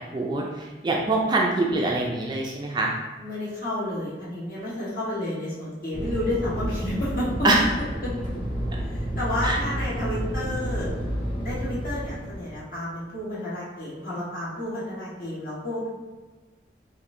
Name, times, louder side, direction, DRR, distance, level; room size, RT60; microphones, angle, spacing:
voice 1, 0.1-0.4 0.8-2.9 7.4-7.6 9.4-9.6, right 2 dB, 25° right, -1 dB, 0.3 m, -23 dB
voice 2, 3.2-7.3 8.9-10.9 11.4-15.9, left 1 dB, 50° left, -8 dB, 1.3 m, -31 dB
Fixed-wing aircraft airplane, 5.9-12.6, equal, 25° left, 1.0 m, -30 dB
4.2 x 2.6 x 2.6 m, 1.2 s
head